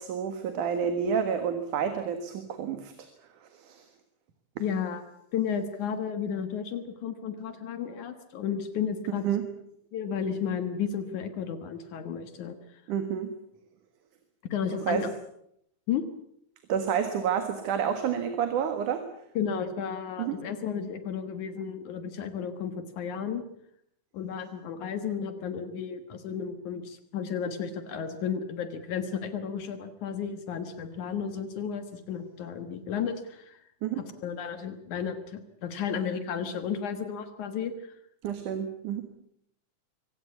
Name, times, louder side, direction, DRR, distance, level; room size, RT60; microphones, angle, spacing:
voice 1, 0.0-2.9 3.5-3.9 9.2-9.4 12.9-13.3 14.9-15.0 16.7-19.0 20.2-20.3 33.8-34.0 38.2-39.0, right 7 dB, 80° right, 8 dB, 3.1 m, -29 dB
voice 2, 4.6-5.0 5.3-9.3 9.9-12.8 14.4-15.1 15.9-16.0 19.4-23.4 24.1-33.6 34.0-38.0, left 7 dB, 75° left, 9 dB, 2.9 m, -33 dB
24.0 x 17.5 x 8.3 m, 0.73 s
omnidirectional pair, 3.5 m